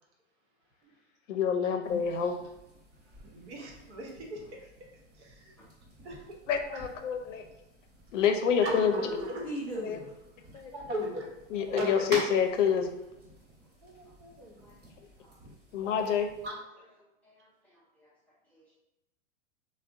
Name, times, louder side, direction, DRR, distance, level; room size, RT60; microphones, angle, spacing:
voice 1, 1.3-2.4 6.5-7.4 8.1-9.0 9.8-10.0 10.5-10.7 11.5-12.9 15.7-16.3, left 7 dB, 80° left, 5 dB, 0.6 m, -27 dB
sound 1, 1.8-16.5, right 1 dB, 25° right, 1.1 m, -48 dB
voice 2, 3.2-4.7 5.1-5.6 6.0-6.4 6.7-6.8 8.6-9.4 10.7-11.3 11.5-12.2 13.8-14.6 16.4-16.6, equal, 65° right, -1 dB, 1.0 m, -37 dB
voice 3, 9.4-10.1 14.6-14.8 15.2-15.4 17.2-18.1 18.5-18.7, right 1 dB, 5° left, -10 dB, 0.3 m, -41 dB
3.5 x 2.2 x 2.5 m, 0.92 s
hypercardioid pair, 125°, 37 cm